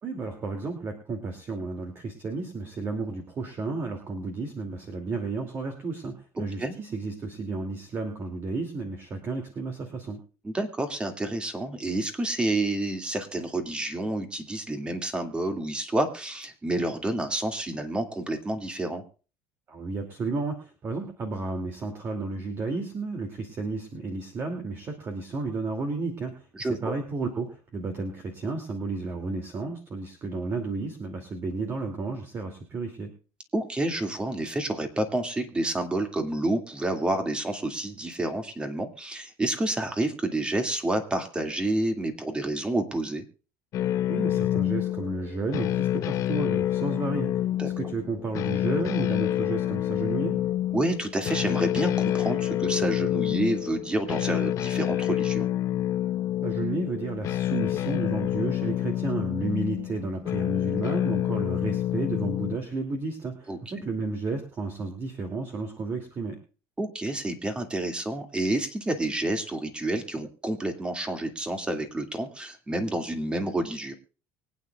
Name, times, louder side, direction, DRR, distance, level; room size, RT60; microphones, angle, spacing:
voice 1, 0.0-10.2 19.7-33.1 44.1-47.3 47.8-50.4 56.4-66.4, right 3 dB, 35° right, 4 dB, 2.6 m, -32 dB
voice 2, 6.4-6.7 10.4-19.0 26.6-26.9 33.5-43.2 47.6-47.7 50.7-55.5 63.5-63.6 66.8-73.9, right 1 dB, 15° right, 6 dB, 2.3 m, -29 dB
sound 1, 43.7-62.6, left 12 dB, 50° left, 0.8 m, -28 dB
24.0 x 9.4 x 2.4 m, 0.36 s
cardioid pair, 120°, 7 cm